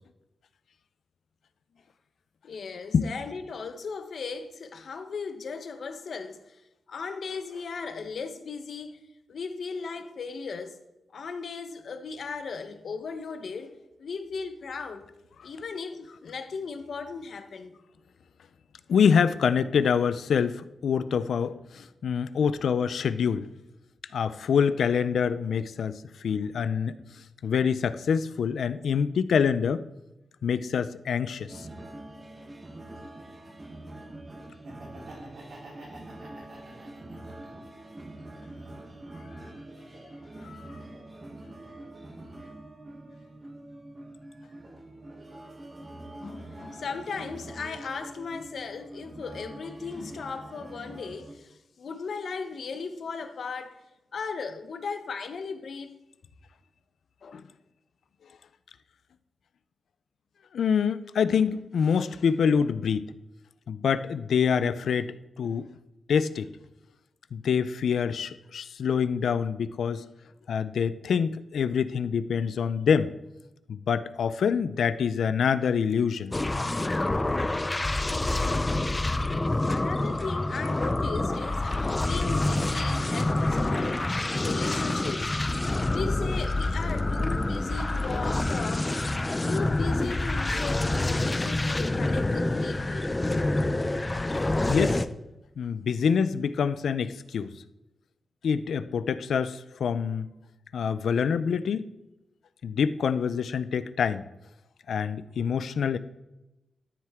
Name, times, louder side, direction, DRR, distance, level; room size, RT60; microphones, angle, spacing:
voice 1, 2.4-6.6 6.9-9.0 9.3-10.8 11.1-15.1 15.4-17.8 46.2-53.8 54.1-55.9 57.2-57.4 79.7-85.4 85.9-89.0 89.4-93.1, left 5 dB, 65° left, 0.9 m, -37 dB
voice 2, 18.9-23.5 24.1-27.0 27.4-29.8 30.4-31.7 40.4-40.7 57.3-57.4 60.5-63.1 63.7-65.7 66.1-66.5 67.3-70.0 70.5-73.1 73.7-76.3 94.7-95.0 95.6-97.5 98.4-100.3 100.7-101.9 102.6-104.2 104.9-106.0, left 7 dB, 85° left, 0.4 m, -26 dB
sound 1, 31.5-51.3, right 1 dB, 25° right, 1.1 m, -45 dB
Laughter, 34.5-37.7 38.1-39.2, right 2 dB, 70° right, 3.7 m, -48 dB
sound 2, 76.3-95.1, left 2 dB, 20° left, 0.4 m, -27 dB
13.0 x 7.5 x 3.6 m
wide cardioid pair, 150°, 0 cm